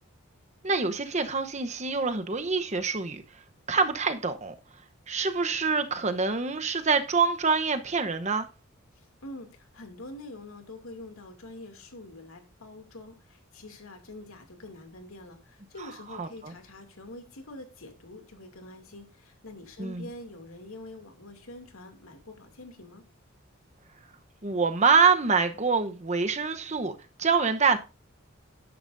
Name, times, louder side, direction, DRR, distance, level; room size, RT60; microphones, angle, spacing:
voice 1, 0.6-3.2 3.7-4.5 5.1-8.5 16.2-16.5 19.8-20.1 24.4-27.8, right 5 dB, 35° right, 0.9 m, -25 dB
voice 2, 8.9-23.0, left 2 dB, 85° left, 2.5 m, -45 dB
11.5 x 10.5 x 2.6 m
head